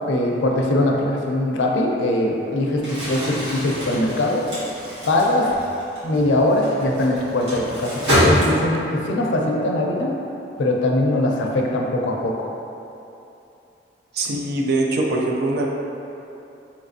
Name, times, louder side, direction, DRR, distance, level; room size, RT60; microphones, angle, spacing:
voice 1, 0.1-4.5 5.1-5.5 6.0-10.2 10.6-12.5, left 1 dB, 80° left, 0 dB, 0.4 m, -21 dB
Crumpling crinkling, 2.7-8.9, equal, 75° right, 1.4 m, -25 dB
voice 2, 14.1-15.7, right 2 dB, 60° right, -1 dB, 0.4 m, -22 dB
3.3 x 3.0 x 2.6 m, 2.8 s
head